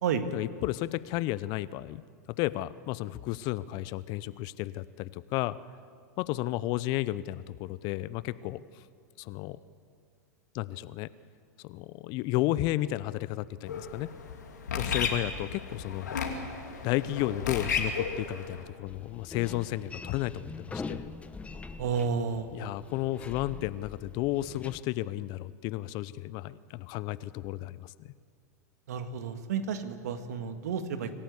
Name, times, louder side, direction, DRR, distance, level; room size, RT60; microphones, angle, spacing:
voice 1, 0.3-2.0 2.4-5.6 6.2-8.8 9.2-9.6 10.5-11.1 11.6-14.1 14.8-16.2 16.8-21.1 22.5-28.1, left 16 dB, 50° left, 18 dB, 0.7 m, -33 dB
sound 1, 13.7-18.6, left 5 dB, 80° left, 2.7 m, -34 dB
sound 2, 18.9-24.8, left 4 dB, 15° left, 1.0 m, -43 dB
voice 2, 21.8-22.5 28.9-31.1, right 6 dB, 70° right, 8 dB, 1.8 m, -31 dB
25.5 x 14.0 x 8.1 m, 2.3 s
hypercardioid pair, 95°, 9 cm